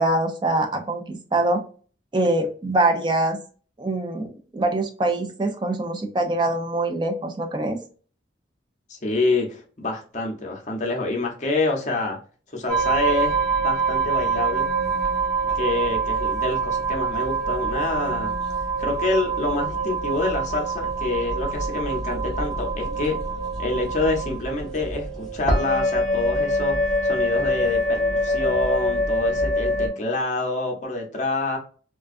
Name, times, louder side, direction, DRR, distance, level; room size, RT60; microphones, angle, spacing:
voice 1, 0.0-1.6 2.1-3.4 3.8-7.8, right 2 dB, 25° right, 5 dB, 0.3 m, -24 dB
voice 2, 8.9-12.2 12.5-14.7 15.5-18.3 18.8-23.1 23.6-31.6, left 2 dB, 40° left, 0 dB, 0.7 m, -27 dB
sound 1, 12.7-29.9, right 2 dB, ahead, 0.7 m, -25 dB
2.4 x 2.3 x 2.4 m, 0.41 s
head